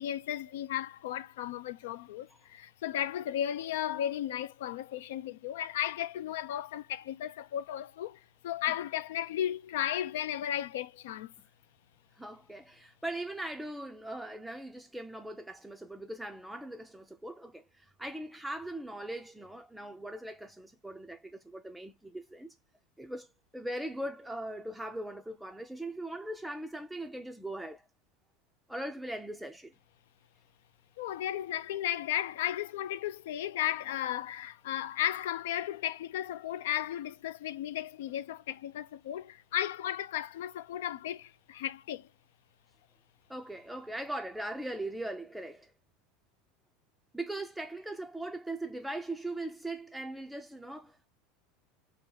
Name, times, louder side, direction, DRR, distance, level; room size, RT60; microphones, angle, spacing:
voice 1, 0.0-11.3 31.0-42.1, left 11 dB, 85° left, 0.4 m, -35 dB
voice 2, 12.2-22.6 23.0-23.3 23.5-27.8 28.7-29.7 43.3-45.7 47.1-51.1, right 1 dB, 5° right, 0.4 m, -40 dB
3.3 x 2.8 x 3.7 m
supercardioid pair, 125°, 0 cm